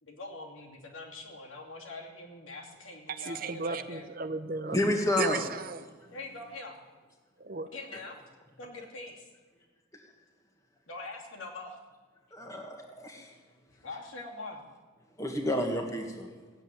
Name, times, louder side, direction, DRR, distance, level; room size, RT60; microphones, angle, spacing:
voice 1, 0.0-4.0 6.1-6.8 7.7-8.2 8.6-9.3 10.9-11.8 13.8-14.6, left 2 dB, 75° left, 2.6 m, -43 dB
voice 2, 3.1-4.8 5.2-5.8 7.4-7.7, right 4 dB, 45° right, 0.7 m, -34 dB
voice 3, 4.7-5.4 9.9-10.0 12.3-13.4 15.2-16.4, left 1 dB, 15° left, 1.6 m, -30 dB
16.0 x 7.9 x 9.1 m
head